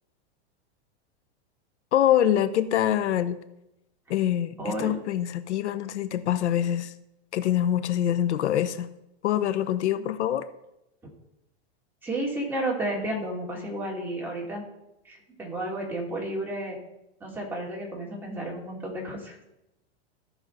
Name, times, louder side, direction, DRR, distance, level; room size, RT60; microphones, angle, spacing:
voice 1, 1.9-3.4 4.1-6.9 7.3-8.9 9.2-10.5, left 11 dB, 90° left, 12 dB, 0.8 m, -25 dB
voice 2, 4.6-5.0 12.0-14.6 15.0-16.8 17.2-19.4, right 1 dB, 5° right, -4 dB, 2.7 m, -32 dB
15.0 x 6.1 x 4.0 m, 0.88 s
supercardioid pair, 145°, 33 cm